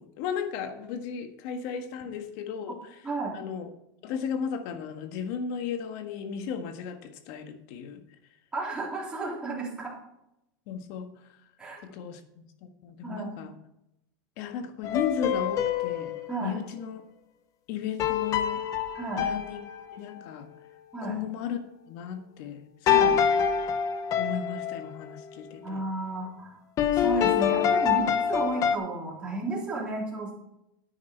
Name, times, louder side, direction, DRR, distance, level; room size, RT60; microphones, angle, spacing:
voice 1, 0.0-2.8 3.3-3.7 4.0-8.0 10.7-11.3 11.8-13.5 14.4-16.1 16.4-17.0 17.7-18.6 19.2-19.6 19.9-20.5 21.0-21.6 21.9-23.2 24.2-25.8, left 7 dB, 50° left, 7 dB, 1.5 m, -35 dB
voice 2, 8.5-10.0 11.6-11.8 13.0-13.3 16.3-16.6 18.9-19.3 20.9-21.2 22.9-23.2 25.6-26.6 26.9-30.3, right 2 dB, 10° right, -5 dB, 3.5 m, -33 dB
sound 1, 14.8-16.4 18.0-20.2 22.9-24.9 26.8-28.8, left 8 dB, 30° left, 0.8 m, -25 dB
9.7 x 9.7 x 4.5 m, 0.84 s
supercardioid pair, 150°, 11 cm